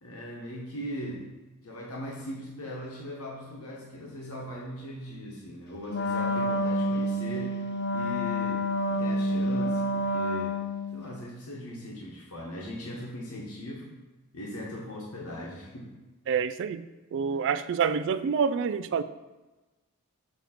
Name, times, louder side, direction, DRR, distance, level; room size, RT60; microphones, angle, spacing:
voice 1, 0.0-1.3 1.6-7.6 7.9-10.6 10.9-13.9 14.3-15.9, equal, 80° left, -3 dB, 1.2 m, -39 dB
Wind instrument woodwind instrument, 5.9-11.0, equal, 50° left, 0.6 m, -28 dB
voice 2, 16.3-19.0, right 6 dB, 55° right, 13 dB, 0.3 m, -27 dB
7.0 x 3.0 x 5.7 m, 1.2 s
head